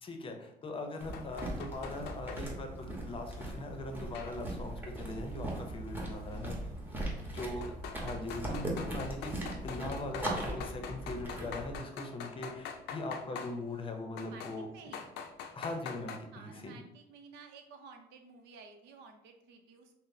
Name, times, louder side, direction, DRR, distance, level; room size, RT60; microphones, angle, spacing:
voice 1, 0.0-6.6 7.3-7.7 8.0-14.7 15.5-16.8, left 2 dB, 30° left, 4 dB, 0.6 m, -41 dB
sound 1, 1.0-11.8, right 1 dB, 10° right, 1.0 m, -40 dB
sound 2, 1.1-2.4 4.1-4.7 6.3-6.4 7.4-13.5 14.2-14.6 14.9-16.2, left 7 dB, 85° left, 0.4 m, -44 dB
voice 2, 6.3-7.6 14.2-15.1 16.3-19.9, right 4 dB, 85° right, 5 dB, 0.6 m, -54 dB
5.6 x 2.0 x 2.6 m, 0.89 s
cardioid pair, 110°, 17 cm